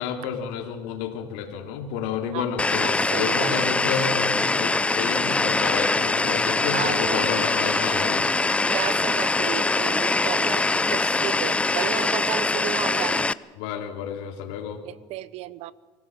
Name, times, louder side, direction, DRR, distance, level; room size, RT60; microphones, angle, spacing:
voice 1, 0.0-8.3 13.6-14.8, left 7 dB, 80° left, 3 dB, 2.8 m, -30 dB
sound 1, 2.6-13.3, left 3 dB, 10° left, 0.6 m, -23 dB
voice 2, 2.8-3.7 6.7-7.3 8.7-10.6 10.9-13.3 14.8-15.7, right 14 dB, 65° right, 18 dB, 1.0 m, -33 dB
25.0 x 16.0 x 7.6 m, 1.3 s
supercardioid pair, 110°, 12 cm